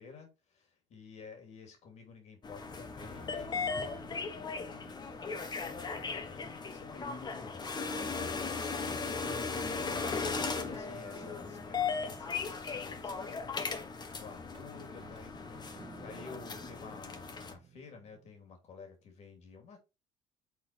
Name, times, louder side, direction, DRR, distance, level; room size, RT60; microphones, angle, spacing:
voice 1, 0.0-9.1 9.6-13.8 14.2-19.8, left 5 dB, 55° left, 2.9 m, -52 dB
sound 1, 2.4-17.5, left 4 dB, 30° left, 1.3 m, -37 dB
sound 2, 3.0-6.4 10.2-13.6 14.5-18.4, right 4 dB, 35° right, 1.9 m, -56 dB
6.0 x 4.1 x 4.6 m
supercardioid pair, 80°, 14 cm